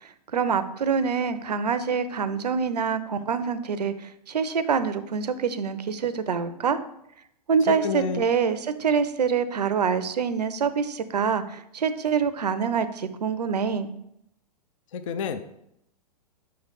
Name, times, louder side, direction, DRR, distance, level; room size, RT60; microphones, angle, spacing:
voice 1, 0.0-6.8 7.5-13.9, right 6 dB, 70° right, 13 dB, 0.5 m, -26 dB
voice 2, 7.7-8.3 14.9-15.4, left 5 dB, 50° left, 9 dB, 0.5 m, -29 dB
5.7 x 3.2 x 5.6 m, 0.77 s
figure-of-eight pair, 110°, 21 cm